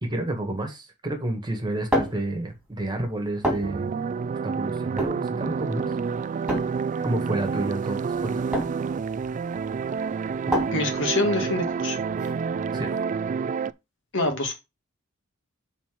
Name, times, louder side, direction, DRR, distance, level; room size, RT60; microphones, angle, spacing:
voice 1, 0.0-4.0 4.4-5.9 7.0-8.5 10.5-10.6 12.7-12.9, right 1 dB, 20° right, 1.8 m, -30 dB
sound 1, 1.5-13.0, equal, 5° right, 2.7 m, -32 dB
sound 2, 3.6-13.7, right 5 dB, 35° right, 0.3 m, -29 dB
voice 2, 10.7-12.0 14.1-14.5, left 2 dB, 60° left, 1.9 m, -25 dB
5.7 x 4.3 x 6.1 m
head